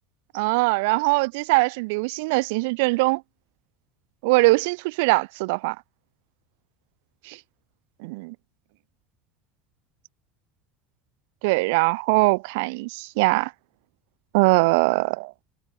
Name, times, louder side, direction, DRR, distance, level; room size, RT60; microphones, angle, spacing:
voice 1, 0.3-3.2 4.2-5.8 7.3-7.4 8.0-8.3 11.4-13.5 14.3-15.3, right 27 dB, 80° right, 2.0 m, -21 dB
cardioid pair, 140°, 0 cm